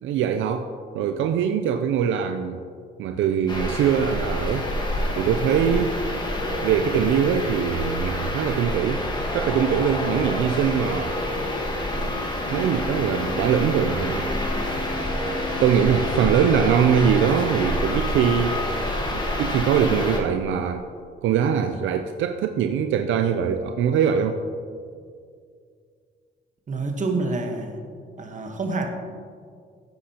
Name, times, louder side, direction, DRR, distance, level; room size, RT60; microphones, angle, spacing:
voice 1, 0.0-2.7 3.0-4.7 5.2-5.9 6.6-9.0 9.3-11.1 12.5-14.3 15.6-18.6 19.1-20.9 21.2-24.4, right 8 dB, 75° right, 7 dB, 0.5 m, -22 dB
sound 1, 3.5-20.2, left 1 dB, 20° left, 1.4 m, -27 dB
sound 2, 12.5-17.5, equal, 75° left, 2.2 m, -38 dB
voice 2, 26.7-27.8 28.2-28.9, right 3 dB, 40° right, 4 dB, 1.2 m, -27 dB
10.5 x 8.5 x 2.9 m, 2.2 s
cardioid pair, 90°, 20 cm